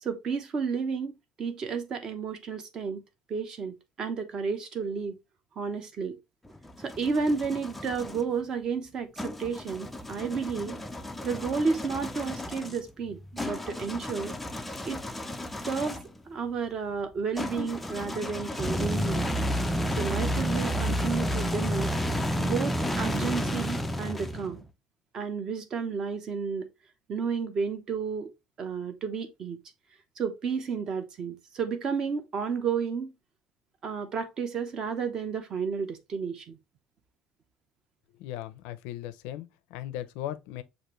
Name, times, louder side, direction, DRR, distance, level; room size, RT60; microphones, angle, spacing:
voice 1, 0.0-3.0 3.3-5.2 5.6-6.2 6.8-10.8 11.2-14.3 14.8-15.0 15.7-16.0 16.3-19.3 20.0-21.9 22.4-24.6 25.1-26.6 27.1-28.3 28.6-29.6 30.2-33.1 33.8-36.6, right 5 dB, 30° right, 0.7 m, -32 dB
sound 1, 6.4-8.2 9.2-16.2 17.3-24.6, equal, 5° left, 0.3 m, -31 dB
voice 2, 38.2-40.6, left 13 dB, 85° left, 0.5 m, -38 dB
6.4 x 2.5 x 3.0 m
cardioid pair, 170°, 2 cm